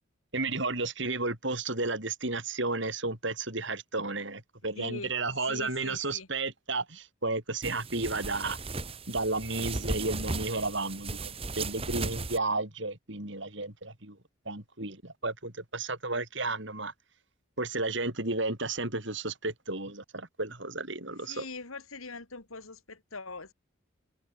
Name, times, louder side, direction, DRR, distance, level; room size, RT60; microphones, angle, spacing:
voice 1, 0.3-8.6 9.1-14.2 14.4-16.9 17.6-21.5, right 3 dB, 60° right, 4.9 m, -33 dB
voice 2, 4.8-5.1 5.4-6.3 21.3-23.5, left 3 dB, 85° left, 3.1 m, -42 dB
sound 1, 7.6-12.4, right 3 dB, 25° right, 1.5 m, -36 dB
head